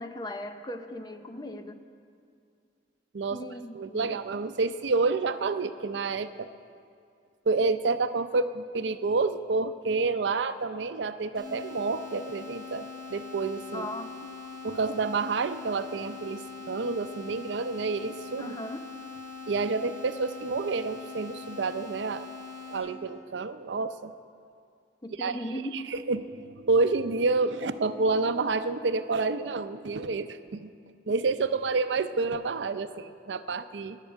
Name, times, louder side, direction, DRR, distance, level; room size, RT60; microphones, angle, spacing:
voice 1, 0.0-1.8 3.3-4.2 13.7-14.1 18.4-18.9 25.0-25.9, equal, 20° left, 8 dB, 0.6 m, -38 dB
voice 2, 3.7-6.5 7.5-13.9 14.6-18.5 19.5-22.3 22.7-24.1 25.2-25.4 25.7-30.7 31.1-34.0, right 3 dB, 85° right, 11 dB, 0.5 m, -29 dB
sound 1, 11.3-22.8, left 5 dB, ahead, 4.2 m, -42 dB
10.5 x 10.5 x 8.1 m, 2.4 s
head